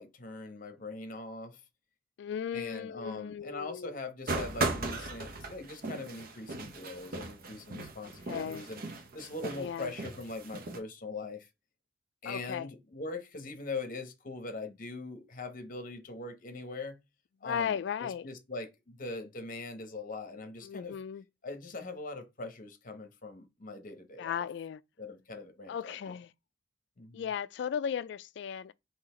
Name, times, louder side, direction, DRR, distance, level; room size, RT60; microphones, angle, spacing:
voice 1, 0.0-1.6 2.5-8.8 9.1-11.5 12.2-17.0 17.4-21.0 21.4-24.4 25.0-26.1 27.0-27.3, left 3 dB, 45° left, 0.9 m, -41 dB
voice 2, 2.2-3.9 8.0-8.7 9.5-9.9 12.3-12.7 17.4-18.3 20.6-21.2 24.2-24.8 25.7-26.3 27.1-28.7, left 8 dB, 65° left, 0.3 m, -36 dB
sound 1, 4.3-10.8, right 3 dB, 55° right, 0.7 m, -37 dB
3.9 x 2.8 x 4.2 m
head